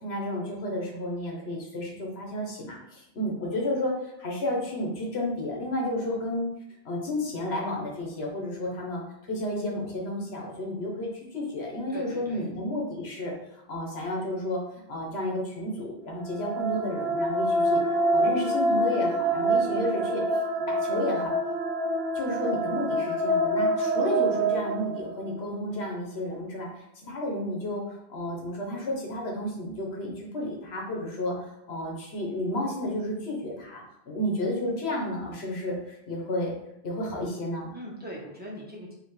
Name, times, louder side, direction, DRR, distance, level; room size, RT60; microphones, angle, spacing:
voice 1, 0.0-6.5 6.8-13.3 13.7-14.6 14.9-17.8 18.1-20.4 20.7-21.3 22.1-36.5 36.8-37.7, left 1 dB, 85° left, -1 dB, 1.3 m, -32 dB
voice 2, 11.9-12.4 37.7-38.9, equal, 10° right, -4 dB, 0.9 m, -41 dB
sound 1, 16.2-25.4, right 1 dB, 75° right, 0.9 m, -26 dB
4.9 x 2.9 x 3.2 m, 0.81 s
omnidirectional pair, 1.0 m